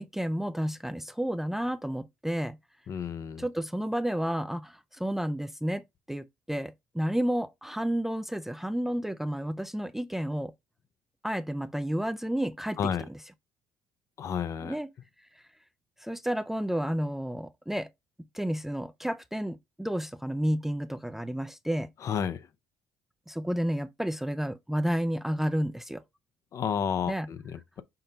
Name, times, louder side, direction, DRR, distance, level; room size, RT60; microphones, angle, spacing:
voice 1, 0.0-2.6 3.4-10.5 11.2-13.2 14.6-14.9 15.4-15.5 16.0-17.9 18.3-21.9 23.3-26.0 27.1-27.3, equal, 5° right, 0.3 m, -31 dB
voice 2, 2.9-3.5 12.8-13.1 14.2-14.7 22.0-22.5 26.5-27.8, left 7 dB, 50° left, 0.5 m, -31 dB
5.7 x 2.2 x 4.0 m
supercardioid pair, 75°, 7 cm